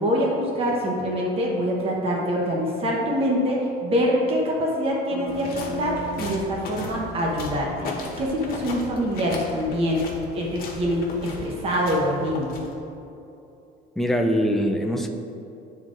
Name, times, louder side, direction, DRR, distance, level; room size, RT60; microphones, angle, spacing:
voice 1, 0.0-7.9 8.2-10.0 10.3-12.5, equal, 30° right, -3 dB, 1.0 m, -25 dB
Bass guitar, 5.1-9.2, equal, 20° left, 1.0 m, -39 dB
sound 1, 5.3-12.9, left 2 dB, 50° left, 1.1 m, -37 dB
voice 2, 14.0-15.1, equal, ahead, 3 dB, 0.3 m, -22 dB
10.5 x 3.7 x 2.5 m, 2.8 s
cardioid pair, 145°, 19 cm